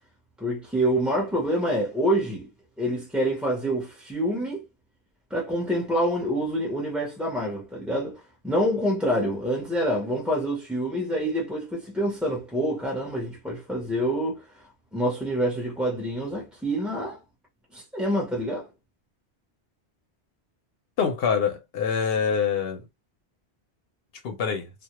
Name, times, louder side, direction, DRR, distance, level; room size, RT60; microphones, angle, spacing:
voice 1, 0.4-2.5 2.8-4.6 5.3-14.4 14.9-17.2 17.7-18.7, equal, ahead, 0.5 m, -26 dB
voice 2, 21.0-22.8 24.2-24.7, left 6 dB, 65° left, 0.8 m, -25 dB
2.2 x 2.0 x 2.9 m
omnidirectional pair, 1.1 m